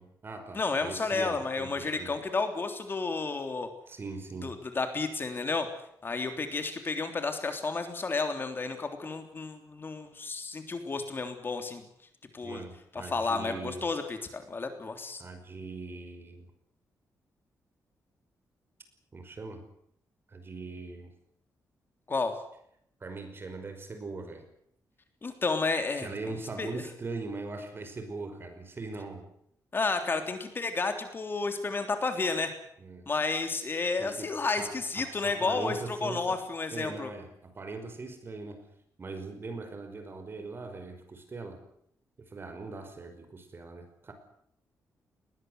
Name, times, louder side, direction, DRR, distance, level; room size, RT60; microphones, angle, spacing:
voice 1, 0.0-2.2 3.9-4.5 12.4-13.9 15.2-16.5 19.1-19.6 20.3-21.1 23.0-24.5 26.0-29.3 32.8-33.1 34.0-36.4 36.7-38.7 39.0-41.6 42.2-44.1, right 3 dB, 35° right, 8 dB, 5.4 m, -41 dB
voice 2, 0.5-3.7 4.4-5.7 6.0-11.8 12.3-12.6 12.9-15.2 22.1-22.3 25.2-26.1 26.6-26.8 29.7-32.5 33.1-37.1, left 4 dB, 35° left, 7 dB, 3.4 m, -31 dB
21.0 x 19.0 x 9.5 m, 0.71 s
cardioid pair, 115°, 6 cm